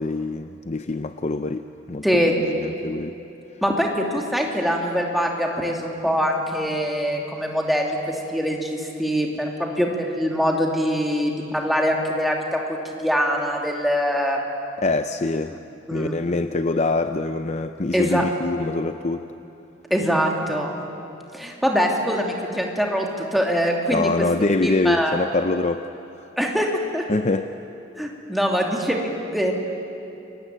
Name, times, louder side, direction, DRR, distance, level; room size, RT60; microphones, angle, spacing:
voice 1, 0.0-3.1 14.8-15.5 15.9-19.3 23.9-25.9 27.1-27.5, left 2 dB, 35° left, 9 dB, 0.6 m, -24 dB
voice 2, 2.0-2.3 3.6-9.5 9.8-14.4 15.9-16.1 17.9-18.2 19.9-20.8 21.3-24.3 24.6-25.2 26.4-27.0 28.0-29.5, equal, ahead, 0 dB, 2.8 m, -23 dB
29.5 x 22.5 x 9.2 m, 2.8 s
head